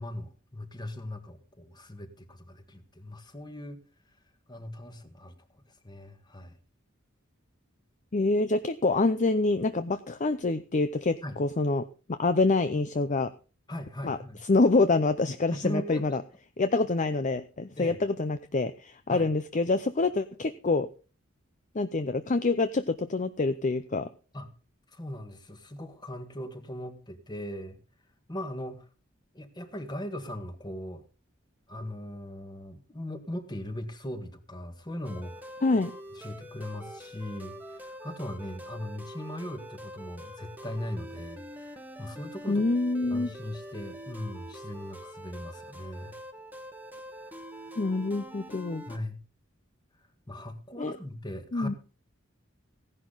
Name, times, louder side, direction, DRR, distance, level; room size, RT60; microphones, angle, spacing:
voice 1, 0.0-3.8 4.5-5.3 5.8-6.6 11.2-11.4 13.7-14.4 15.5-16.2 17.8-18.0 19.1-19.3 24.3-24.5 24.9-27.8 28.3-28.9 29.3-31.0 31.7-35.5 36.1-42.6 43.1-46.2 47.2-47.4 48.9-49.2 50.3-51.7, left 1 dB, 20° left, 8 dB, 1.6 m, -39 dB
voice 2, 8.1-13.3 14.0-16.2 16.6-20.9 21.7-24.1 35.6-35.9 42.5-43.3 47.8-48.8 50.8-50.9 51.5-51.7, left 3 dB, 35° left, 11 dB, 0.6 m, -26 dB
sound 1, 35.0-49.0, equal, 10° right, 1.3 m, -45 dB
16.0 x 11.0 x 3.9 m, 0.35 s
head